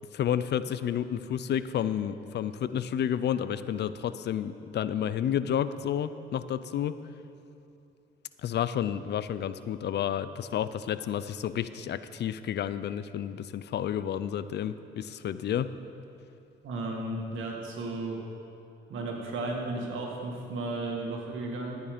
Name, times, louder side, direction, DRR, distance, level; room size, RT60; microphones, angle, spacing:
voice 1, 0.1-7.0 8.4-15.7, left 9 dB, 60° left, 14 dB, 0.5 m, -30 dB
voice 2, 16.6-18.2 18.9-21.8, right 2 dB, 80° right, 0 dB, 2.1 m, -34 dB
13.0 x 9.5 x 5.1 m, 2.7 s
cardioid pair, 90°, 20 cm